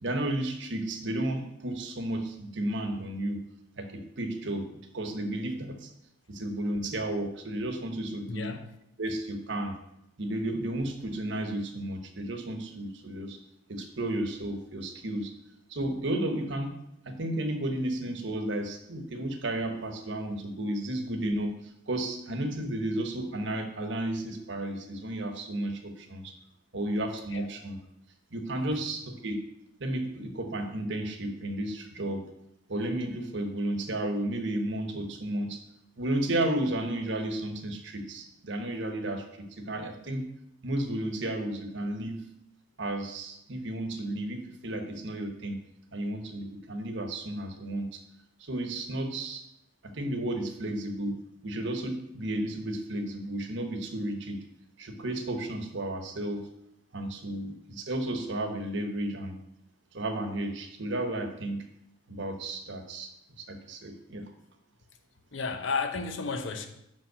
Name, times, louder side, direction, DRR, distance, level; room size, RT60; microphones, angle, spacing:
voice 1, 0.0-3.4 3.8-5.9 6.3-8.5 9.0-9.7 10.2-13.4 13.7-15.3 15.7-16.7 17.1-21.5 21.9-26.3 26.7-27.8 28.3-29.4 29.8-32.2 32.7-35.6 36.0-40.3 40.6-42.3 42.8-45.6 45.9-48.0 48.4-49.4 49.8-54.4 54.8-56.5 56.9-59.4 59.9-61.6 62.1-63.1 63.4-64.3, right 1 dB, 60° right, 1.1 m, -33 dB
voice 2, 8.3-8.6 27.3-27.5 65.3-66.7, left 4 dB, 70° left, 0.8 m, -32 dB
5.5 x 5.3 x 6.7 m
head